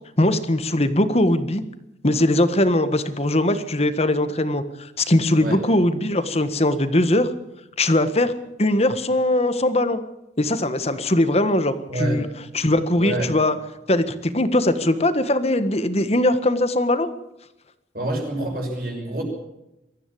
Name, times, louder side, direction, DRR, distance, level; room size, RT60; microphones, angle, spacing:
voice 1, 0.2-1.6 2.0-7.3 7.8-8.3 8.6-10.0 10.4-12.2 12.5-13.5 13.9-17.1, left 1 dB, 35° left, 11 dB, 1.6 m, -20 dB
voice 2, 13.0-13.3 17.9-19.2, right 1 dB, 55° right, 0 dB, 6.4 m, -26 dB
23.5 x 14.0 x 8.6 m, 0.90 s
head